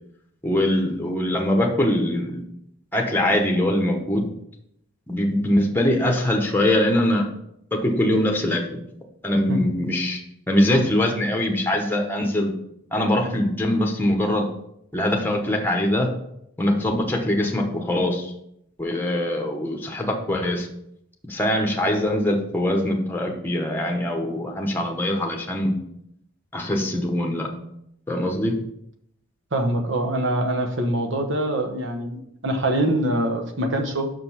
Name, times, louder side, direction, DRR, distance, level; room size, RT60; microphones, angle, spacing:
voice 1, 0.4-2.4 2.9-4.3 5.1-7.3 7.7-8.6 9.2-10.2 10.5-12.5 12.9-14.5 14.9-16.1 16.6-18.3 18.8-20.7 21.3-25.8 26.5-27.5 28.1-28.6, left 1 dB, 10° left, 2 dB, 1.0 m, -22 dB
voice 2, 29.5-34.1, right 1 dB, 60° right, 4 dB, 1.1 m, -24 dB
6.1 x 5.1 x 5.7 m, 0.76 s
head